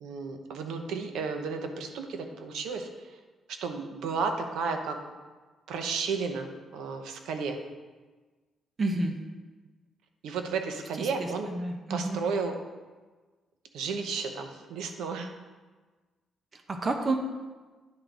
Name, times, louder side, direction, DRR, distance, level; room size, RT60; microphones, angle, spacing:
voice 1, 0.0-3.2 3.6-5.0 5.7-7.6 10.2-11.5 11.9-12.5 13.7-15.3, right 5 dB, 90° right, 5 dB, 0.8 m, -33 dB
voice 2, 8.8-9.2 11.0-12.2 16.5-17.2, right 2 dB, 35° right, 4 dB, 0.8 m, -30 dB
10.5 x 3.9 x 4.6 m, 1.3 s
cardioid pair, 120°, 0 cm